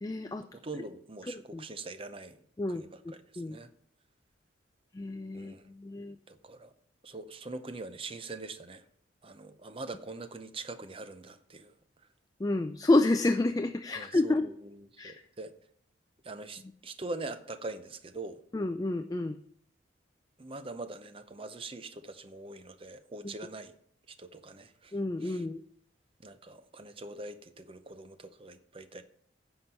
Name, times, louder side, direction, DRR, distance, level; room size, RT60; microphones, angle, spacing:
voice 1, 0.0-0.4 1.3-1.6 2.6-2.8 3.4-3.6 4.9-6.2 12.4-14.5 15.0-15.1 18.5-19.4 24.9-25.6, left 2 dB, 20° left, 7 dB, 0.3 m, -29 dB
voice 2, 0.6-2.4 2.7-3.7 5.3-5.7 6.3-6.7 7.0-8.8 9.2-11.7 13.9-15.5 16.2-18.4 20.4-23.7 24.1-25.4 26.2-29.0, right 2 dB, 30° right, 11 dB, 0.6 m, -43 dB
9.9 x 5.9 x 5.3 m, 0.64 s
head